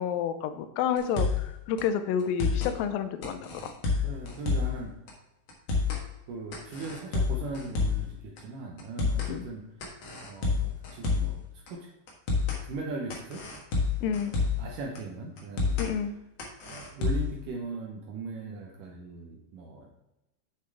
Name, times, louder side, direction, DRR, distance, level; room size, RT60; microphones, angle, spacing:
voice 1, 0.0-3.7 9.3-9.5 14.0-14.3 15.8-16.1, left 8 dB, 80° left, 10 dB, 2.4 m, -30 dB
sound 1, 1.0-1.5 1.8-1.9 2.2-2.7 3.2-4.8 5.1-5.2 5.5-6.0 6.5-8.1 8.4-8.5 8.8-9.3 9.8-11.4 11.7-11.8 12.1-12.6 13.1-14.7 15.0-15.1 15.4-15.9 16.4-17.4, left 4 dB, 60° left, 1.4 m, -28 dB
voice 2, 4.0-4.9 6.3-9.7 10.2-11.4 11.7-11.9 12.6-13.4 14.0-15.9 16.6-19.9, right 3 dB, 75° right, 0 dB, 2.3 m, -39 dB
7.6 x 6.6 x 3.4 m, 0.91 s
omnidirectional pair, 4.1 m